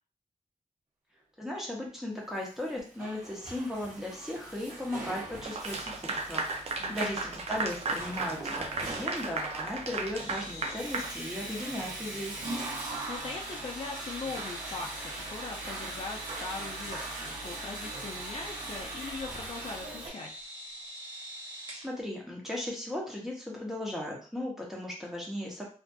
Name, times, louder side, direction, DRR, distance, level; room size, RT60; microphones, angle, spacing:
voice 1, 1.4-12.3 21.8-25.6, left 1 dB, 5° right, -3 dB, 0.8 m, -37 dB
Water / Toilet flush, 2.6-20.1, right 2 dB, 90° right, 0.9 m, -41 dB
Clapping / Applause, 5.4-11.8, right 3 dB, 50° right, 0.4 m, -35 dB
voice 2, 6.8-7.2 13.1-20.3, left 4 dB, 45° left, 0 dB, 0.4 m, -41 dB
sound 1, 10.1-21.9, right 1 dB, 30° right, 0.9 m, -45 dB
2.6 x 2.4 x 2.3 m, 0.39 s
wide cardioid pair, 140°, 14 cm